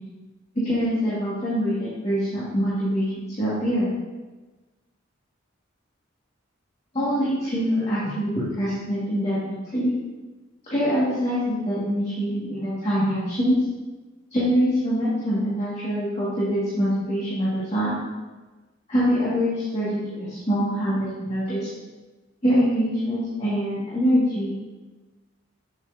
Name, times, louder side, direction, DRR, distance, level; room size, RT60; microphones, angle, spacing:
voice 1, 0.6-3.9 6.9-9.9 10.6-13.6 14.3-18.0 18.9-21.7 22.4-24.5, equal, 30° left, -10 dB, 1.8 m, -24 dB
7.9 x 7.5 x 2.7 m, 1.2 s
head